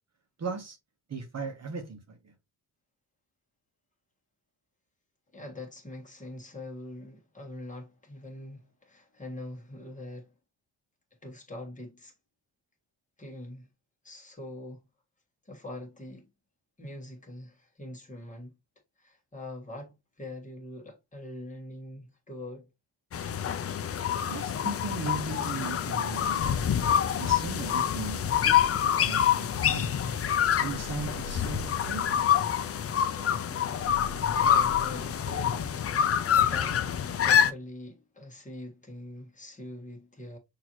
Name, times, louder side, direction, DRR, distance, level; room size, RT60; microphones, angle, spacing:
voice 1, 0.4-0.8 1.1-2.0 24.2-26.4 27.2-29.9 30.6-32.2, right 4 dB, 40° right, 1.0 m, -37 dB
voice 2, 5.3-10.3 11.2-12.1 13.2-13.7 14.0-14.8 15.4-16.3 16.8-18.6 19.0-22.7 34.4-40.4, left 1 dB, 20° left, 1.5 m, -43 dB
sound 1, 23.1-37.5, left 9 dB, 40° left, 0.4 m, -26 dB
sound 2, 28.0-35.2, equal, 60° right, 1.2 m, -45 dB
6.1 x 2.8 x 2.9 m
cardioid pair, 120°, 39 cm